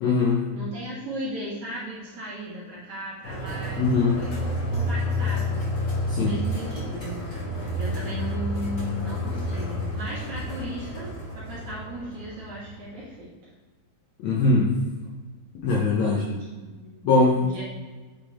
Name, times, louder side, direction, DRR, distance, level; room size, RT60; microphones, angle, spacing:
voice 1, 0.0-0.4 3.8-4.2 6.1-6.4 14.2-14.7 15.6-16.2 17.0-17.6, left 3 dB, 75° left, -4 dB, 1.6 m, -21 dB
voice 2, 0.5-11.1 11.3-13.3 16.0-17.0 17.3-17.6, right 1 dB, 55° right, -8 dB, 2.7 m, -37 dB
sound 1, 3.2-13.0, left 1 dB, 45° left, 1.2 m, -30 dB
8.3 x 3.8 x 4.2 m, 1.3 s
omnidirectional pair, 4.5 m